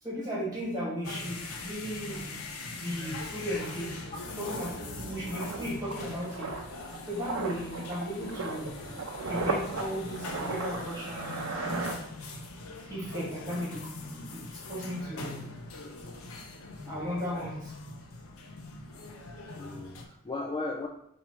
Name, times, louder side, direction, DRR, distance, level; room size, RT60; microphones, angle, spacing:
voice 1, 0.0-2.3 2.6-4.0 4.4-6.5 7.1-8.7 9.2-12.0 12.9-14.4 14.7-15.4 16.8-17.7, equal, 15° right, -6 dB, 1.9 m, -36 dB
sound 1, 1.0-20.0, left 2 dB, 70° left, 0.6 m, -42 dB
sound 2, 3.1-3.2 3.5-12.6 12.9-13.1, right 3 dB, 70° right, 0.6 m, -37 dB
voice 2, 16.8-17.2 19.5-20.9, left 3 dB, 25° left, 0 dB, 0.3 m, -37 dB
4.3 x 2.7 x 4.5 m, 0.73 s
head